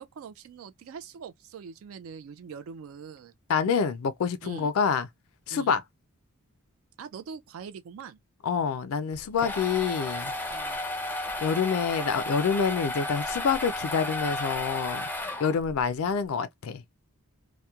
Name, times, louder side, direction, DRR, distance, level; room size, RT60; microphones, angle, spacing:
voice 1, 0.0-3.3 4.4-4.7 5.5-5.8 7.0-8.2 10.5-10.8, right 6 dB, 70° right, 0.3 m, -43 dB
voice 2, 3.5-5.1 5.5-5.8 8.4-10.3 11.4-15.1 15.4-16.8, left 6 dB, 75° left, 0.3 m, -27 dB
sound 1, 9.1-15.8, left 1 dB, 10° left, 0.4 m, -33 dB
2.9 x 2.1 x 2.2 m
head